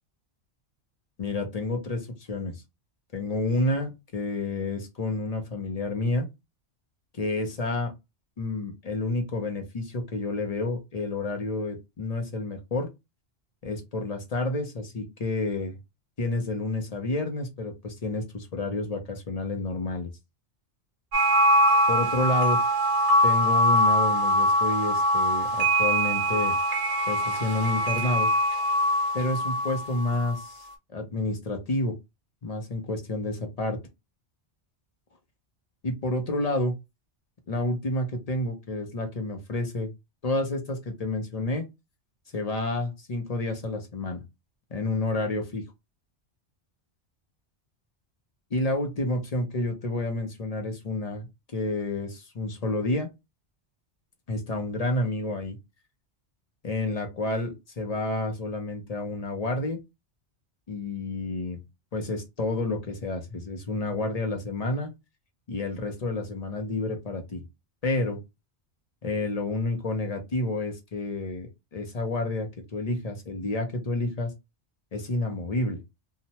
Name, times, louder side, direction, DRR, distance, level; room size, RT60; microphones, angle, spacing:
voice 1, 1.2-2.6 3.1-6.3 7.1-7.9 8.4-12.9 13.6-15.8 16.2-20.1 21.9-22.6 23.2-26.6 27.1-28.3 29.1-32.0 32.4-33.8 35.8-36.7 37.5-39.9 40.2-41.7 42.3-44.2 44.7-45.6 48.5-53.1 54.3-55.6 56.6-59.8 60.7-61.6 61.9-64.9 65.5-67.4 67.8-68.2 69.0-74.3 74.9-75.8, left 2 dB, 45° left, 4 dB, 0.6 m, -29 dB
sound 1, 21.1-30.4, equal, 85° right, 1.2 m, -23 dB
2.8 x 2.1 x 2.8 m, 0.22 s
omnidirectional pair, 1.2 m